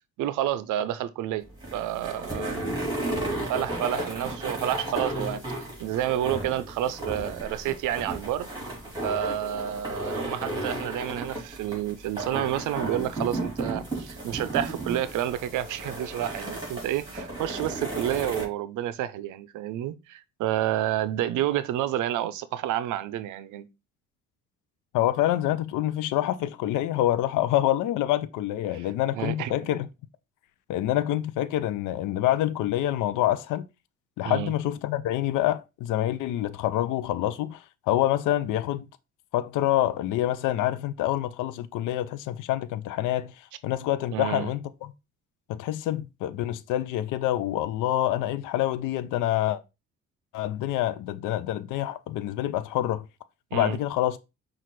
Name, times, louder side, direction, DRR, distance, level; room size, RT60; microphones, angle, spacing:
voice 1, 0.2-1.4 1.7-2.6 3.5-5.4 5.8-8.5 9.0-23.7 29.1-29.5 34.2-34.5 44.1-44.5 53.5-53.8, right 12 dB, 80° right, 0.5 m, -29 dB
sound 1, 1.4-18.5, right 1 dB, 15° right, 2.7 m, -34 dB
voice 2, 24.9-29.9 30.7-33.7 34.2-38.9 39.3-44.9 45.5-49.6 50.3-53.0 53.5-54.2, left 13 dB, 85° left, 0.5 m, -26 dB
5.8 x 2.4 x 3.1 m
cardioid pair, 90°, 30 cm